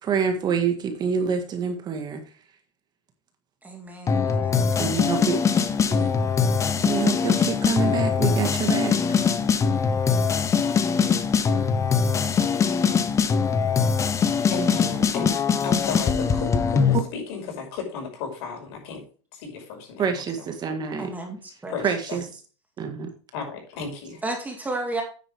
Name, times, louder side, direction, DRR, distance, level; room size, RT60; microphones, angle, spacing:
voice 1, 0.0-2.2 4.8-5.4 5.9-6.1 6.8-8.9 20.0-21.1 21.8-22.2 22.8-23.1, right 6 dB, 25° right, 6 dB, 1.8 m, -26 dB
voice 2, 3.6-4.7 21.0-21.8 24.2-25.0, right 2 dB, 10° right, 3 dB, 2.4 m, -33 dB
sound 1, 4.1-17.0, left 6 dB, 20° left, 1.0 m, -22 dB
voice 3, 14.5-15.4 15.6-19.0 19.3-20.5 21.7-22.2 23.3-24.2, left 5 dB, 60° left, 2 dB, 5.6 m, -34 dB
9.6 x 9.3 x 3.5 m, 0.38 s
supercardioid pair, 135°, 15 cm